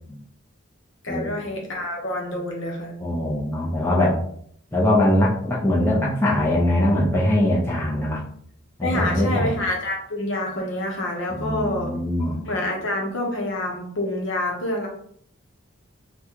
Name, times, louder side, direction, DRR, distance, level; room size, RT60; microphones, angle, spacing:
voice 1, 1.0-2.9 8.8-11.9 12.4-14.9, left 1 dB, 60° left, 0 dB, 0.8 m, -27 dB
voice 2, 3.0-4.2 4.7-8.2 8.8-9.5 11.3-12.4, left 1 dB, 10° left, -5 dB, 0.6 m, -21 dB
4.0 x 2.2 x 2.9 m, 0.64 s
head